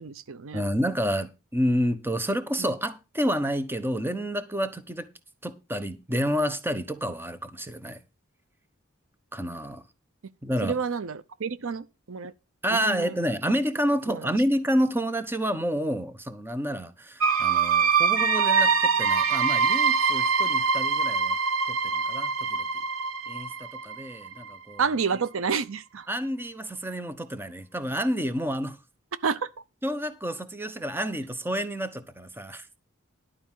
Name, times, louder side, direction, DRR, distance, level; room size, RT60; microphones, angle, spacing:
voice 1, 0.0-0.6 2.6-2.7 10.6-12.3 12.7-13.1 14.1-14.2 24.8-26.1 29.2-29.5, right 5 dB, 70° right, 0.7 m, -29 dB
voice 2, 0.5-5.1 5.4-8.0 9.3-9.8 10.4-10.8 12.6-21.4 21.7-22.7 23.3-24.8 26.1-28.8 29.8-32.7, equal, 10° right, 1.0 m, -29 dB
sound 1, 17.2-24.8, right 5 dB, 90° right, 1.2 m, -24 dB
11.5 x 5.0 x 7.4 m
head